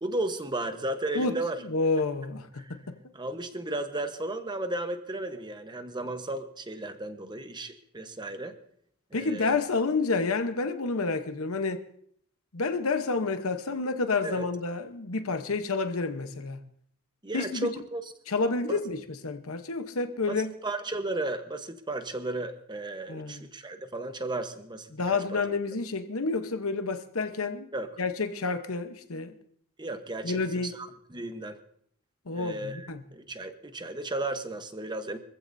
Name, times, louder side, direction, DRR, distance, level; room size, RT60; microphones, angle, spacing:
voice 1, 0.0-1.6 2.6-2.7 3.1-8.6 9.1-9.6 14.2-14.5 17.2-18.0 18.7-18.8 20.3-25.4 27.7-27.9 29.8-31.6 32.3-35.2, right 2 dB, 20° right, 1.1 m, -34 dB
voice 2, 1.6-3.0 9.1-11.8 12.5-16.6 17.3-17.7 18.3-20.5 23.1-23.4 24.9-27.7 28.0-29.3 30.2-30.7 32.3-33.0, left 3 dB, 70° left, 1.0 m, -29 dB
23.5 x 15.0 x 2.7 m
head